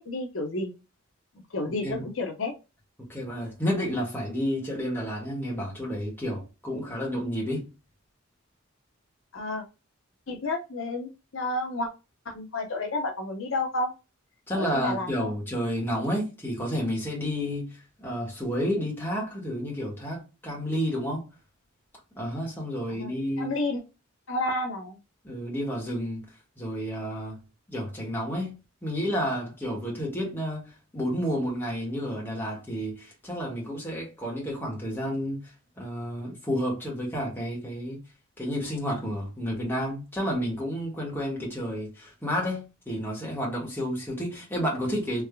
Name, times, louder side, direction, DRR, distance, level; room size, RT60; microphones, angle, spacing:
voice 1, 0.1-0.7 1.5-2.5 9.3-9.6 10.3-11.9 12.3-13.9 14.5-15.3 22.9-23.1 23.4-23.8 24.3-25.0, left 2 dB, 65° left, 0.8 m, -30 dB
voice 2, 1.6-2.0 3.1-7.7 14.5-21.3 22.1-23.5 25.2-26.2 26.6-27.4 27.7-28.5 28.8-38.0 38.4-45.2, equal, 10° left, 1.5 m, -31 dB
3.4 x 3.2 x 2.2 m
head